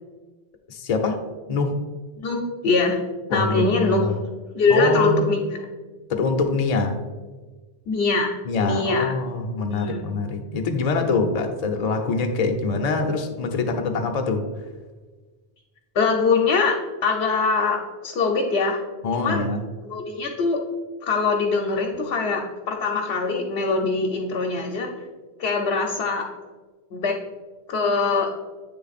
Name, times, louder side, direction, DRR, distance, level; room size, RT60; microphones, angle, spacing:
voice 1, 0.7-1.2 1.5-1.8 3.3-4.2 4.7-5.3 6.1-7.0 8.4-14.4 19.0-19.6, left 3 dB, 45° left, 4 dB, 0.6 m, -24 dB
voice 2, 2.2-3.0 3.3-4.0 4.6-5.6 7.9-9.1 9.7-10.0 15.9-16.7 17.0-18.8 19.2-19.5 19.8-20.6 21.0-24.9 25.4-26.2 26.9-27.1 27.7-28.3, left 4 dB, 70° left, 1 dB, 0.9 m, -22 dB
8.5 x 3.3 x 4.1 m, 1.3 s
omnidirectional pair, 1.1 m